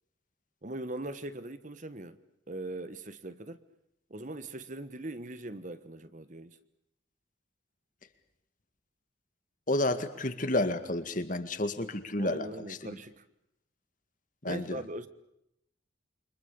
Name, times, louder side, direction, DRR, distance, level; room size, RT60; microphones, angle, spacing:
voice 1, 0.6-2.2 2.5-3.6 4.1-6.6 12.2-13.2 14.4-15.1, right 1 dB, 40° right, 1.3 m, -40 dB
voice 2, 9.7-12.8 14.4-14.8, left 1 dB, 45° left, 1.9 m, -31 dB
28.5 x 25.0 x 7.0 m
head